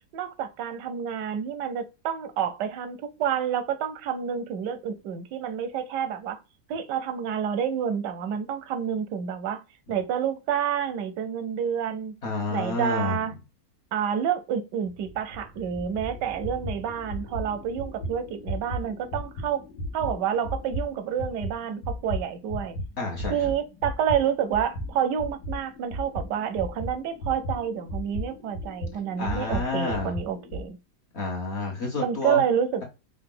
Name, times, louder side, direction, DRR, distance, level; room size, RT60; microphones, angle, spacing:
voice 1, 0.1-6.4 6.7-9.6 9.9-12.1 12.5-13.3 13.9-19.6 19.9-22.8 23.3-30.8 32.0-32.8, right 8 dB, 90° right, 1.3 m, -29 dB
voice 2, 12.2-13.2 23.0-23.4 29.2-30.1 31.1-32.4, left 3 dB, 50° left, 1.0 m, -29 dB
sound 1, 14.8-22.9 23.2-30.7, equal, 80° left, 1.6 m, -35 dB
4.8 x 2.4 x 3.7 m
omnidirectional pair, 1.8 m